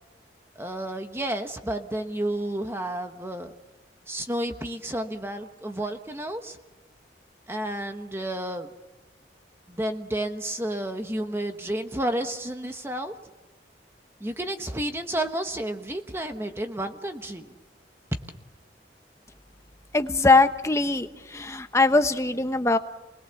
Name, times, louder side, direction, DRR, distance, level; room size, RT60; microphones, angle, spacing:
voice 1, 0.6-3.5 4.1-6.6 7.5-8.7 9.7-13.1 14.2-17.5, right 1 dB, 15° right, 6 dB, 1.1 m, -31 dB
voice 2, 19.9-22.8, left 3 dB, 15° left, 9 dB, 1.0 m, -21 dB
28.5 x 21.5 x 7.1 m, 1.1 s
head